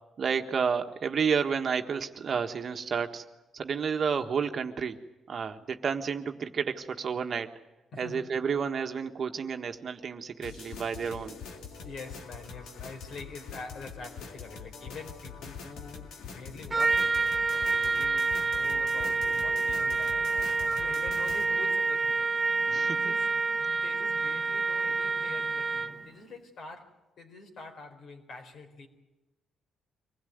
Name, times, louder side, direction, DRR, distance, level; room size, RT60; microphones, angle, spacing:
voice 1, 0.2-3.2 3.5-5.0 5.3-7.5 7.9-11.3 22.7-23.1, right 6 dB, 50° right, 6 dB, 1.5 m, -31 dB
voice 2, 7.9-8.3 11.0-11.2 11.8-28.9, left 4 dB, 65° left, 4 dB, 4.5 m, -46 dB
sound 1, 10.4-21.4, left 6 dB, 80° left, 2.3 m, -44 dB
Trumpet, 16.7-26.1, right 4 dB, 25° right, 1.1 m, -28 dB
25.0 x 16.5 x 9.5 m, 1.1 s
cardioid pair, 90°, 0 cm